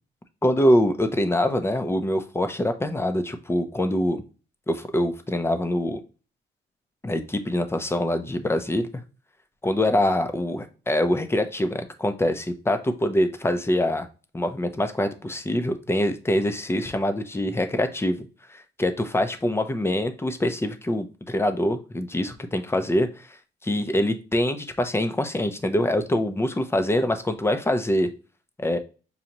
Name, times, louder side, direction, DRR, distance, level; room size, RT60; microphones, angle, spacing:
voice 1, 0.4-4.2 4.7-6.0 7.0-8.9 9.6-14.1 14.3-23.4 23.6-28.1 28.6-28.8, left 1 dB, 10° left, 8 dB, 0.6 m, -24 dB
5.3 x 2.3 x 2.9 m, 0.35 s
cardioid pair, 90°, 20 cm